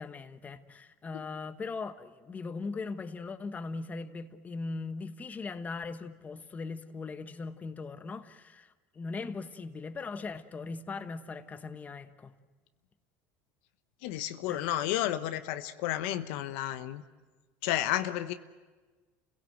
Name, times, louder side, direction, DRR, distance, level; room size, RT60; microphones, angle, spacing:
voice 1, 0.0-12.4 14.5-14.7, left 4 dB, 25° left, 1.2 m, -39 dB
voice 2, 14.0-17.0 17.6-18.3, left 13 dB, 75° left, 1.0 m, -32 dB
29.0 x 17.0 x 7.9 m
supercardioid pair, 105°, 6 cm